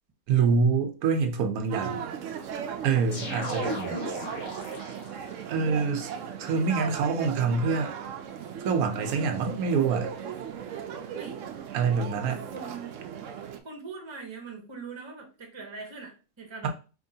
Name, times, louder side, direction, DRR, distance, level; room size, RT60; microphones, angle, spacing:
voice 1, 0.3-2.0 2.8-3.8 4.1-4.2 5.5-6.1 6.4-7.9 8.6-10.1 11.7-12.4, right 5 dB, 90° right, 1.2 m, -25 dB
sound 1, 1.7-13.6, right 7 dB, 70° right, 0.9 m, -37 dB
sound 2, 3.1-5.3, equal, 75° left, 1.9 m, -35 dB
voice 2, 3.1-3.8 11.1-11.4 12.2-13.0 13.6-16.7, right 4 dB, 25° right, 0.8 m, -42 dB
4.5 x 2.9 x 2.7 m
omnidirectional pair, 1.5 m